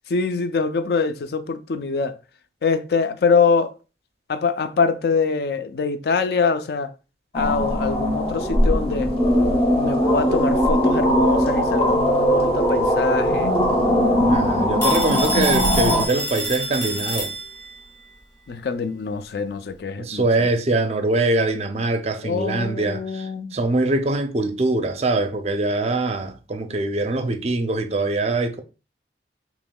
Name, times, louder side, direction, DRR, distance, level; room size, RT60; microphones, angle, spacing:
voice 1, 0.1-2.2 2.6-3.8 4.3-6.9 7.3-13.5 18.5-20.5 22.2-23.6, left 5 dB, 60° left, 0.4 m, -24 dB
sound 1, 7.3-16.1, equal, 30° left, 0.7 m, -20 dB
voice 2, 14.2-17.3 20.0-28.6, right 2 dB, 35° right, 0.4 m, -23 dB
Telephone, 14.8-17.8, right 1 dB, 15° left, 1.0 m, -28 dB
5.2 x 3.0 x 2.2 m
head